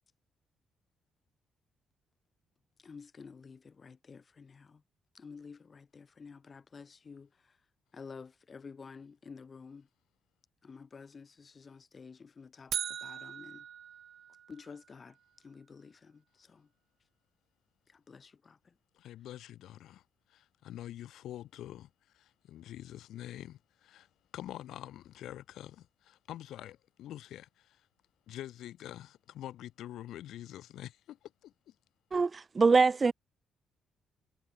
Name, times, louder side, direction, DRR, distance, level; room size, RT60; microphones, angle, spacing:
voice 1, 2.8-4.8 5.1-7.6 7.9-9.9 10.6-13.7 14.5-16.7 17.9-18.7, left 5 dB, 40° left, 4.8 m, -51 dB
sound 1, 12.7-14.8, right 9 dB, 65° right, 0.9 m, -40 dB
voice 2, 18.9-20.0 20.3-27.9 28.3-31.7, left 12 dB, 80° left, 1.9 m, -46 dB
voice 3, 32.1-33.1, right 4 dB, 30° right, 0.5 m, -24 dB
cardioid pair, 90°, 0 cm